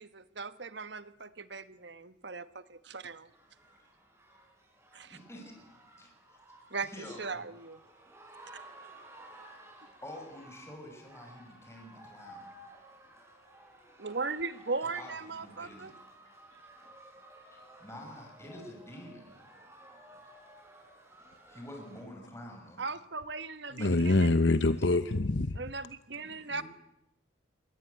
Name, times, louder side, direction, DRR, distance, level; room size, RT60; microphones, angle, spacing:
voice 1, 0.0-3.3 4.9-5.2 6.7-6.9 7.2-7.8 14.0-15.9 22.8-24.3 25.6-26.6, right 4 dB, 60° right, 1.4 m, -38 dB
sound 1, 3.3-22.1, right 1 dB, 15° right, 7.9 m, -55 dB
voice 2, 5.0-5.5 5.9-6.1 6.8-7.5 10.0-12.5 14.8-15.9 17.5-19.4 21.5-22.8 23.8-24.4 26.5-26.6, left 1 dB, 15° left, 6.1 m, -47 dB
voice 3, 23.7-25.6, left 2 dB, 65° left, 1.0 m, -25 dB
27.5 x 21.5 x 9.5 m
head